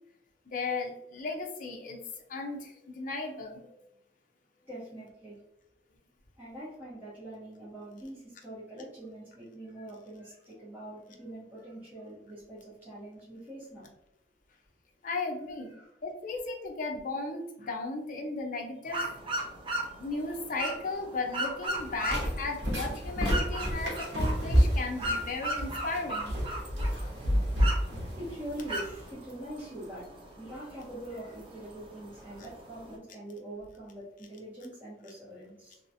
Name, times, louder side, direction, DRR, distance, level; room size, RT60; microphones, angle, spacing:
voice 1, 0.5-2.0 2.3-3.8 15.0-15.8 16.0-19.1 19.9-26.4, left 3 dB, 50° left, 2 dB, 0.6 m, -35 dB
voice 2, 4.7-5.4 6.4-13.9 15.7-15.9 19.8-19.9 28.2-30.1 30.4-35.8, right 1 dB, 10° right, -13 dB, 1.2 m, -43 dB
sound 1, 18.9-33.0, right 1 dB, 30° right, 0.7 m, -38 dB
sound 2, 21.7-29.1, equal, 80° right, 1.0 m, -30 dB
3.1 x 2.9 x 2.6 m, 0.85 s
head